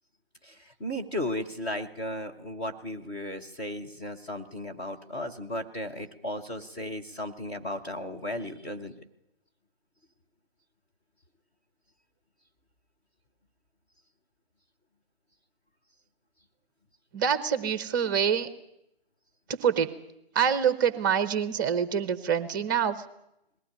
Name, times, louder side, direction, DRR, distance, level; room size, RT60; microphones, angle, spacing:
voice 1, 0.4-9.0, left 1 dB, 10° left, -2 dB, 0.8 m, -35 dB
voice 2, 17.1-18.5 19.6-19.9 20.3-23.0, right 8 dB, 20° right, 12 dB, 1.0 m, -25 dB
20.0 x 15.5 x 9.9 m, 0.84 s
figure-of-eight pair, 145°, 31 cm